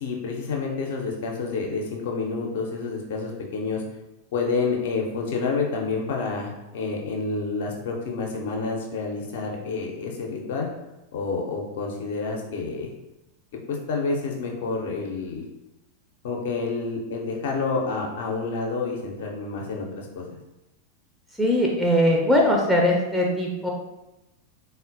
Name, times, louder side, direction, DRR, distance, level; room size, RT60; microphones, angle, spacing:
voice 1, 0.0-3.8 4.3-10.7 11.1-12.9 13.5-15.4 16.2-20.4, left 4 dB, 55° left, 0 dB, 0.5 m, -29 dB
voice 2, 21.4-23.7, left 1 dB, 5° right, -2 dB, 0.4 m, -20 dB
3.7 x 2.1 x 2.5 m, 0.96 s
figure-of-eight pair, 90°, 0 cm